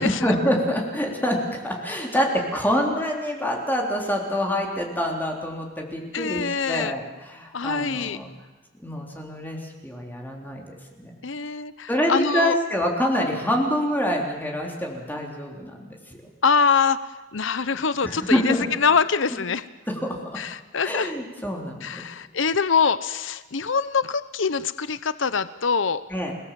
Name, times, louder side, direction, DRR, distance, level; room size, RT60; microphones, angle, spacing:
voice 1, 0.2-8.3 8.8-10.6 11.0-11.1 11.9-15.9 18.0-18.6 20.0-20.2 20.8-22.0 26.1-26.3, equal, 10° left, 0 dB, 3.6 m, -26 dB
voice 2, 6.1-6.9 7.5-8.2 11.2-12.6 16.4-19.7 20.4-21.1 21.8-26.0, left 5 dB, 70° left, 14 dB, 0.8 m, -24 dB
29.0 x 20.0 x 7.6 m, 1.1 s
head